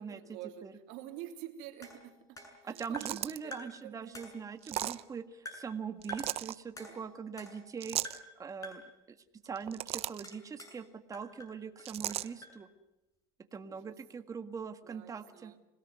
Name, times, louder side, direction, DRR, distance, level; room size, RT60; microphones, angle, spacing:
voice 1, 0.0-4.2 6.7-7.3 13.6-14.0 14.8-15.7, right 12 dB, 75° right, 5 dB, 3.3 m, -49 dB
sound 1, 1.8-3.3 3.5-3.9 4.1-5.1 5.5-5.8 6.1-6.4 6.8-7.8 8.0-8.4 8.6-9.0 10.2-10.8 11.1-12.6, left 2 dB, 25° left, 7.9 m, -49 dB
voice 2, 2.6-8.0 8.4-8.8 9.1-9.2 9.4-12.7 13.5-15.5, right 6 dB, 25° right, 8 dB, 1.7 m, -42 dB
sound 2, 2.7-3.5 4.6-5.0 6.0-6.5 7.8-8.2 9.5-10.3 11.9-12.3, right 13 dB, 50° right, 0.8 m, -36 dB
26.5 x 17.5 x 9.4 m, 0.96 s
supercardioid pair, 105°, 13 cm